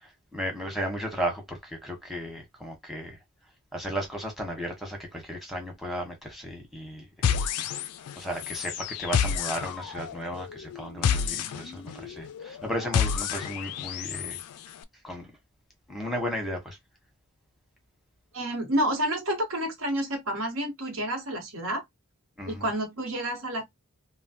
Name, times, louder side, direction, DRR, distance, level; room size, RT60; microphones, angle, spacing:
voice 1, 0.0-3.2 3.7-7.4 8.2-14.4 15.0-15.3 15.9-16.8 22.4-22.7, equal, ahead, 1.0 m, -35 dB
sound 1, 7.2-14.4, left 7 dB, 80° left, 0.4 m, -29 dB
voice 2, 18.3-21.8 22.5-23.6, right 1 dB, 65° right, 1.2 m, -29 dB
3.1 x 2.1 x 2.7 m
head